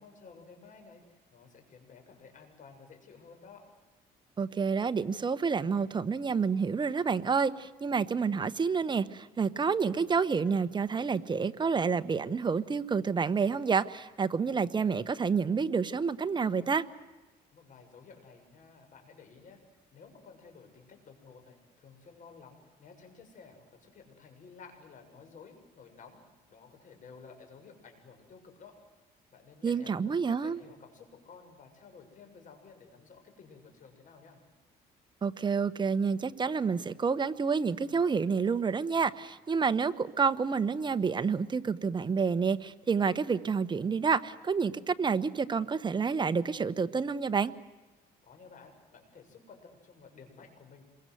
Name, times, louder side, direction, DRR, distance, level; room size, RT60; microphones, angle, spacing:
voice 1, 0.0-3.6 17.5-19.6 19.9-26.2 26.5-28.8 29.3-34.4 48.2-50.8, left 5 dB, 50° left, 5 dB, 6.9 m, -53 dB
voice 2, 4.4-16.9 29.6-30.6 35.2-47.5, right 5 dB, 25° right, 12 dB, 1.1 m, -29 dB
27.0 x 23.0 x 7.9 m, 1.2 s
cardioid pair, 110°, 17 cm